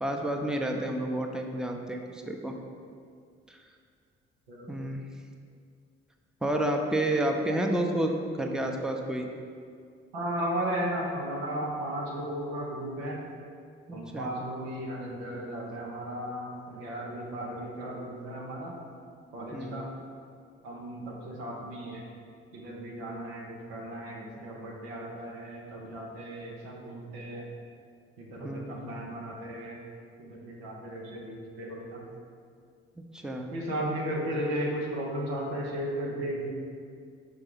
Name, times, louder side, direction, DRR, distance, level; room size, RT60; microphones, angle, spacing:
voice 1, 0.0-2.6 3.5-3.6 4.7-5.0 6.4-9.3 13.9-14.3 19.5-19.8 28.4-28.9 33.1-33.5, right 1 dB, ahead, 2 dB, 0.7 m, -30 dB
voice 2, 10.1-13.2 13.9-18.8 19.3-20.0 20.6-22.0 22.5-27.5 28.2-29.8 30.2-32.1 33.5-36.5, right 1 dB, 90° right, -2 dB, 0.8 m, -35 dB
5.7 x 3.4 x 5.2 m, 2.2 s
hypercardioid pair, 45°, 29 cm